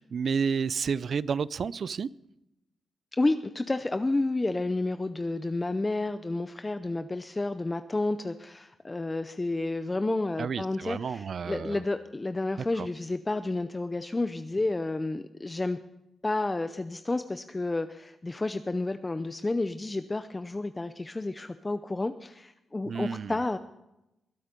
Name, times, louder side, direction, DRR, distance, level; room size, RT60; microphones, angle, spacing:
voice 1, 0.0-2.1 10.4-11.8 12.8-12.9 22.9-23.3, right 6 dB, 55° right, 0.4 m, -30 dB
voice 2, 3.1-15.8 16.2-23.6, left 2 dB, 20° left, 0.5 m, -30 dB
22.0 x 8.2 x 5.2 m
cardioid pair, 110°, 0 cm